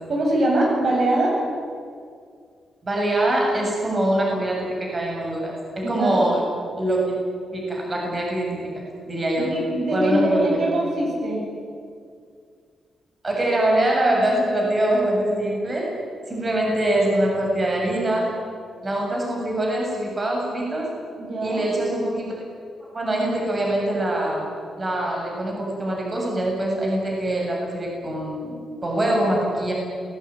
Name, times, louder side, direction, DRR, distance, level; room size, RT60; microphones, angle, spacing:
voice 1, 0.1-1.3 5.8-6.2 9.4-11.4 21.2-21.6, right 1 dB, 45° right, -1 dB, 7.7 m, -23 dB
voice 2, 2.8-6.4 6.8-7.2 7.5-9.5 9.9-10.7 13.2-15.9 16.3-18.3 18.8-20.9 21.4-22.3 22.9-24.4 24.8-29.7, right 1 dB, 25° right, -1 dB, 7.8 m, -23 dB
28.5 x 20.0 x 9.9 m, 2.2 s
wide cardioid pair, 135°, 0 cm